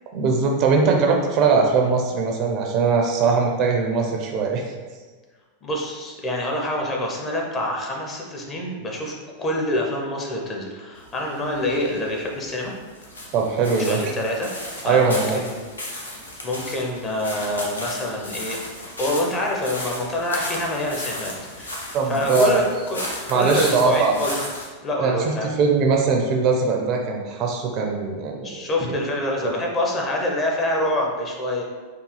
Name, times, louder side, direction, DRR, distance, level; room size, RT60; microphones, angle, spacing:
voice 1, 0.1-4.6 13.3-14.0 14.8-15.4 21.9-22.6 23.3-24.2 25.0-28.6 29.4-29.5, right 4 dB, 40° right, 1 dB, 0.4 m, -21 dB
voice 2, 5.6-12.7 13.8-14.5 14.8-15.6 16.4-18.6 19.0-24.4 24.8-25.5 28.4-31.6, left 1 dB, 25° left, -1 dB, 0.7 m, -26 dB
sound 1, 11.0-24.7, left 1 dB, 75° left, 0.6 m, -34 dB
3.5 x 2.3 x 3.2 m, 1.4 s
figure-of-eight pair, 90°, 0 cm